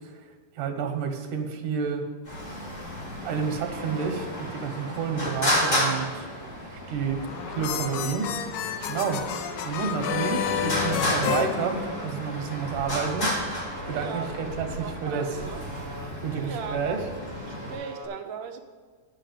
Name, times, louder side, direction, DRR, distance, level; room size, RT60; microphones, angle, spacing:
voice 1, 0.6-2.1 3.2-6.3 6.7-7.2 7.5-8.3 8.9-9.2 9.6-13.3 13.9-15.4 16.2-17.0, right 6 dB, 85° right, 4 dB, 2.6 m, -30 dB
Traffic noise roadway noise, 2.2-17.7, equal, 30° left, 3.9 m, -32 dB
Alarm, 3.2-4.1 5.2-6.1 7.2-8.1 9.2-10.1 11.2-12.1 13.2-14.1 15.2-16.1 17.2-18.1, right 2 dB, 50° right, 1.4 m, -44 dB
sound 1, 7.1-12.4, left 8 dB, 80° left, 2.1 m, -30 dB
voice 2, 13.9-15.6 16.4-17.1 17.4-18.6, right 6 dB, 70° right, 5 dB, 1.9 m, -38 dB
9.8 x 5.7 x 7.5 m, 1.5 s
omnidirectional pair, 3.5 m